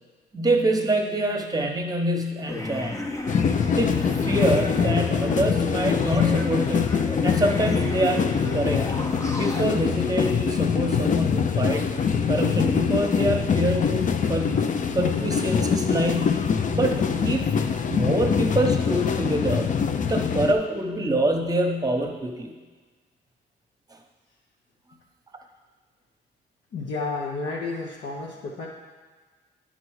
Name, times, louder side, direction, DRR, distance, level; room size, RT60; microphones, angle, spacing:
voice 1, 0.3-3.0 3.7-6.9 7.2-8.9 9.4-11.9 12.3-14.0 14.3-16.4 16.7-17.5 17.9-19.7 20.0-22.5 23.9-24.0, right 1 dB, 20° right, 4 dB, 1.0 m, -25 dB
sound 1, 2.5-9.7, left 1 dB, 20° left, 0.8 m, -33 dB
sound 2, 3.3-20.5, left 6 dB, 45° left, 0.5 m, -24 dB
voice 2, 26.7-28.7, left 3 dB, 70° left, -4 dB, 1.0 m, -31 dB
9.7 x 4.1 x 4.7 m, 1.4 s
cardioid pair, 75°, 18 cm